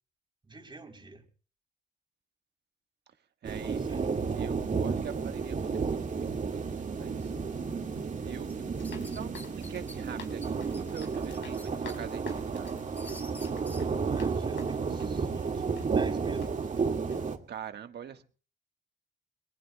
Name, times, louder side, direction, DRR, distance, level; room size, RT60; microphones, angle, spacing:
voice 1, 0.4-1.2 3.6-4.1 14.0-15.7 15.9-17.0, right 3 dB, 25° right, 3.6 m, -47 dB
sound 1, 3.4-17.4, right 5 dB, 40° right, 2.0 m, -32 dB
voice 2, 3.4-4.0 4.3-7.3 8.2-8.7 9.1-12.7 17.5-18.2, right 8 dB, 60° right, 1.4 m, -44 dB
sound 2, 8.5-10.0 10.4-10.5 10.7-12.0 12.4-13.8, left 1 dB, 10° left, 3.7 m, -48 dB
sound 3, 8.7-15.2 15.8-15.9 16.4-16.8 17.1-17.3, left 6 dB, 75° left, 4.3 m, -50 dB
28.0 x 22.0 x 2.2 m
cardioid pair, 90°, 20 cm